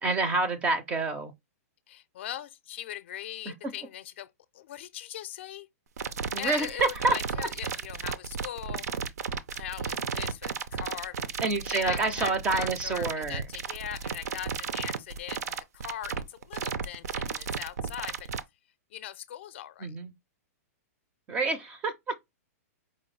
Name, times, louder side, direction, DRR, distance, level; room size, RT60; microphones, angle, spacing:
voice 1, 0.0-1.3 3.5-3.6 6.3-7.2 11.4-13.4 19.8-20.1 21.3-22.1, right 3 dB, 15° right, 0.4 m, -28 dB
voice 2, 1.9-4.3 4.5-5.7 6.4-8.8 9.5-11.2 11.7-18.3 18.9-19.9, left 11 dB, 45° left, 0.4 m, -40 dB
sound 1, 6.0-18.4, right 6 dB, 75° right, 0.6 m, -33 dB
4.9 x 2.2 x 3.1 m
hypercardioid pair, 170°, 9 cm